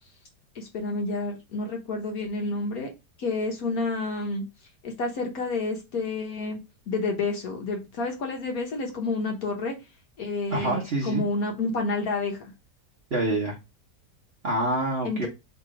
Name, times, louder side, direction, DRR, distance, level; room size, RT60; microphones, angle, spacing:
voice 1, 0.5-2.9 3.2-4.4 4.8-6.6 6.9-9.8 10.2-12.5 15.0-15.3, left 3 dB, 60° left, 2 dB, 1.3 m, -29 dB
voice 2, 10.5-11.2 13.1-13.6 14.4-15.3, right 1 dB, 45° right, -1 dB, 1.0 m, -26 dB
3.3 x 2.9 x 4.7 m, 0.24 s
omnidirectional pair, 1.8 m